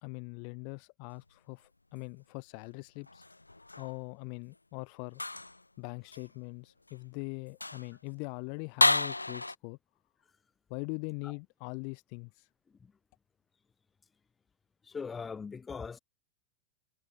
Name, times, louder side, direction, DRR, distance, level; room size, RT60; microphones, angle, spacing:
voice 1, 0.0-3.2 3.8-5.2 5.8-9.8 10.7-12.5, left 40 dB or more, 45° left, 3.8 m, -42 dB
sound 1, 3.0-4.0 5.1-5.6 6.1-6.3 6.9-7.0 7.5-7.9 8.8-9.6, left 2 dB, 85° left, 0.5 m, -30 dB
voice 2, 14.8-16.0, left 5 dB, 15° left, 2.3 m, -40 dB
figure-of-eight pair, 90°, 0 cm